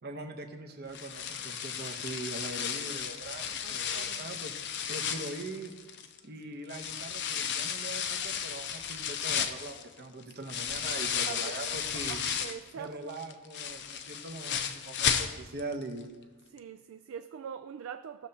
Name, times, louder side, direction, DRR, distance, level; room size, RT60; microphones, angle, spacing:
voice 1, 0.0-4.5 4.9-5.7 6.2-12.2 12.7-16.1, right 2 dB, 45° right, 5 dB, 0.9 m, -41 dB
sound 1, 0.9-6.2 6.7-12.7 13.1-15.7 16.0-16.1 16.6-16.7, left 8 dB, 50° left, 0.6 m, -34 dB
voice 2, 3.6-4.2 11.3-11.4 11.9-13.2 16.5-18.3, right 8 dB, 65° right, 9 dB, 0.3 m, -43 dB
16.5 x 6.5 x 2.8 m, 1.3 s
head